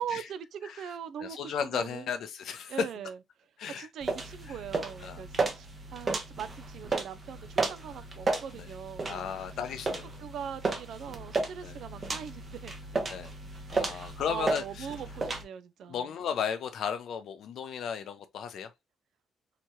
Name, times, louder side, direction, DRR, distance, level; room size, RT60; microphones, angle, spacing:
voice 1, 0.0-2.1 2.7-3.2 3.8-9.3 10.2-12.7 13.9-16.1, right 8 dB, 70° right, 0.4 m, -41 dB
voice 2, 1.2-2.9 3.6-3.9 4.5-4.6 5.0-5.2 8.5-8.7 9.0-10.2 11.6-11.8 13.1-13.3 13.7-14.9 15.9-18.7, left 7 dB, 70° left, 0.6 m, -35 dB
sound 1, 4.0-15.4, right 3 dB, 35° right, 0.7 m, -34 dB
2.9 x 2.2 x 2.8 m
cardioid pair, 90°, 0 cm